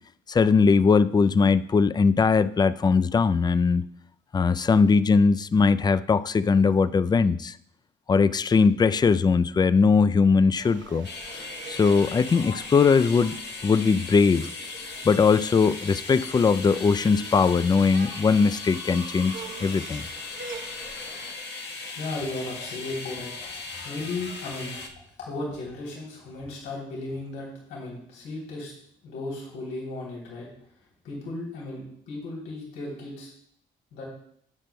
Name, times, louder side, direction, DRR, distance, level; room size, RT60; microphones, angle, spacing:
voice 1, 0.3-3.8 4.3-7.5 8.1-11.1 11.7-13.4 13.6-14.5 15.0-20.0, left 5 dB, 20° left, 14 dB, 0.3 m, -20 dB
sound 1, 10.5-21.4, right 5 dB, 65° right, 1.0 m, -45 dB
sound 2, 11.0-24.9, left 4 dB, 60° left, 1.4 m, -38 dB
voice 2, 21.8-28.7 29.0-30.5 31.0-33.3 33.9-34.0, left 2 dB, 90° left, -4 dB, 3.3 m, -35 dB
16.5 x 6.0 x 2.2 m, 0.65 s
cardioid pair, 90°, 20 cm